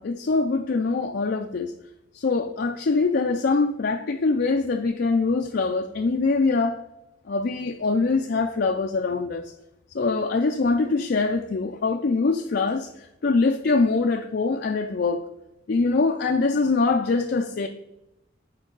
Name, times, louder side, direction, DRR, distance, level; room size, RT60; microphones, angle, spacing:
voice 1, 0.0-1.7 2.1-6.8 7.3-9.5 9.9-15.3 15.7-17.7, left 3 dB, 55° left, 0.4 m, -23 dB
9.7 x 4.6 x 3.9 m
head